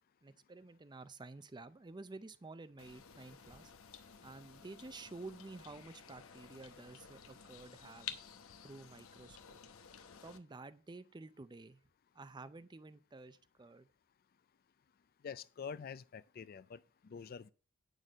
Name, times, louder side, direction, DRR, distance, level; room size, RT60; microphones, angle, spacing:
voice 1, 0.2-3.7 4.2-8.2 8.6-9.6 10.2-11.8 12.1-13.9, right 3 dB, 20° right, 0.5 m, -51 dB
sound 1, 2.8-10.4, left 8 dB, 90° left, 0.9 m, -53 dB
voice 2, 15.2-17.5, left 6 dB, 45° left, 0.4 m, -47 dB
9.0 x 6.5 x 5.1 m
head